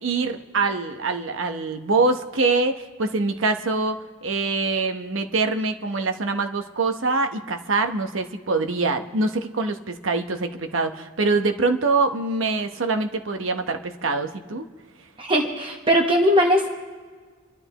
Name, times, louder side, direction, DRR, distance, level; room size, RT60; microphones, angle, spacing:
voice 1, 0.0-4.0 4.2-14.7, right 3 dB, 80° right, 6 dB, 1.0 m, -24 dB
voice 2, 15.2-16.7, equal, 25° right, 1 dB, 1.1 m, -19 dB
29.0 x 12.5 x 3.0 m, 1.5 s
head